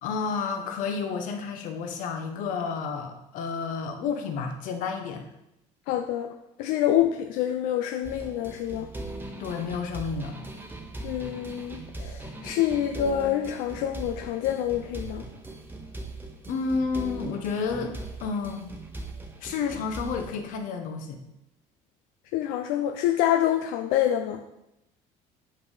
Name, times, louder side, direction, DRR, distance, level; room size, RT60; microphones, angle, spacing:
voice 1, 0.0-5.3 9.4-10.4 16.5-18.7 19.4-21.2, left 5 dB, 70° left, 5 dB, 1.2 m, -31 dB
voice 2, 5.9-6.3 6.6-8.9 11.0-15.2 22.3-24.4, left 11 dB, 90° left, 6 dB, 0.5 m, -26 dB
sound 1, 8.0-20.4, right 2 dB, 15° right, 1.0 m, -40 dB
8.1 x 5.5 x 4.9 m, 0.88 s
cardioid pair, 130°, 14 cm